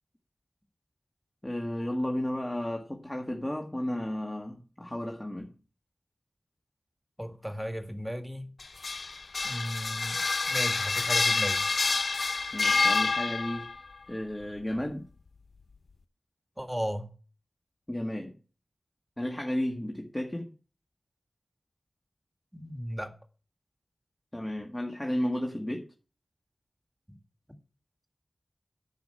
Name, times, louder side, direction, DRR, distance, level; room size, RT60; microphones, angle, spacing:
voice 1, 1.4-5.5 12.5-13.7 14.1-15.1 17.9-18.3 19.2-20.5 24.3-25.9, left 1 dB, 15° left, 1.8 m, -33 dB
voice 2, 7.2-8.5 9.4-10.2 10.5-11.7 16.6-17.1 22.5-23.1 27.1-27.2, equal, 5° right, 1.8 m, -35 dB
sound 1, 8.6-13.8, left 4 dB, 85° left, 0.6 m, -27 dB
10.5 x 6.2 x 7.8 m
wide cardioid pair, 75°, 0 cm